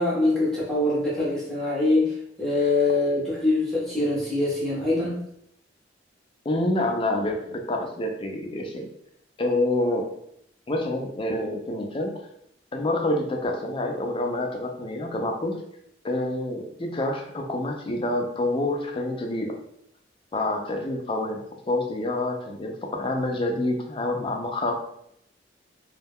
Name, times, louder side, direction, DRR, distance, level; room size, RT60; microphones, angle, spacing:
voice 1, 0.0-2.1 2.4-5.2, left 2 dB, 5° left, -8 dB, 0.7 m, -23 dB
voice 2, 6.5-8.9 9.4-10.1 10.7-12.1 12.7-15.6 16.0-19.5 20.3-24.7, left 1 dB, 30° left, 2 dB, 0.4 m, -27 dB
2.3 x 2.1 x 3.4 m, 0.73 s
head